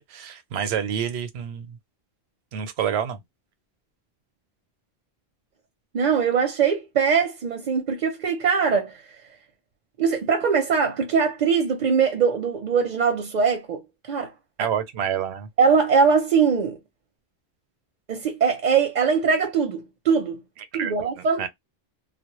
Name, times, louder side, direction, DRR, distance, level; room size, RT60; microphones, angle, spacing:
voice 1, 0.0-1.8 2.5-3.2 14.6-15.5 20.7-20.9 21.4-21.5, right 8 dB, 85° right, 0.8 m, -28 dB
voice 2, 5.9-9.0 10.0-14.3 14.6-14.7 15.6-16.8 18.1-20.4 20.7-21.5, right 6 dB, 55° right, 0.6 m, -22 dB
2.1 x 2.0 x 2.9 m
omnidirectional pair, 1.1 m